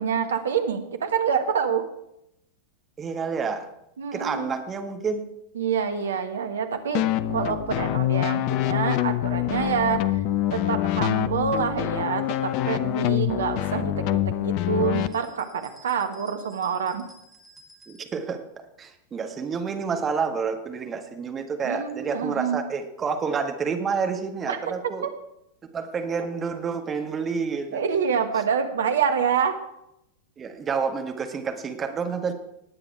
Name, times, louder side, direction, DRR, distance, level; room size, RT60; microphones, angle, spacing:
voice 1, 0.0-1.8 4.0-4.5 5.5-10.0 10.5-17.0 21.6-22.6 24.5-24.7 25.0-25.1 27.7-29.6, right 7 dB, 65° right, 7 dB, 1.5 m, -27 dB
voice 2, 3.0-3.7 4.1-5.2 17.9-18.4 18.8-25.1 25.7-27.8 30.4-32.3, right 5 dB, 20° right, 5 dB, 1.6 m, -29 dB
sound 1, 6.9-15.1, left 14 dB, 45° left, 0.6 m, -25 dB
sound 2, 14.9-18.3, right 1 dB, ahead, 2.6 m, -53 dB
19.5 x 8.8 x 4.7 m, 0.81 s
figure-of-eight pair, 90°, 0 cm